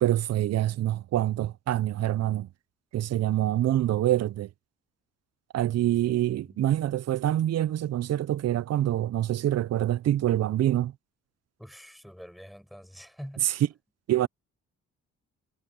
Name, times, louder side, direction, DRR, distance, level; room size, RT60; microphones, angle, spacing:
voice 1, 0.0-2.5 2.9-4.5 5.5-10.9 14.1-14.3, right 13 dB, 55° right, 0.6 m, -26 dB
voice 2, 6.1-6.6 11.6-13.5, equal, ahead, 6.2 m, -46 dB
cardioid pair, 90°, 30 cm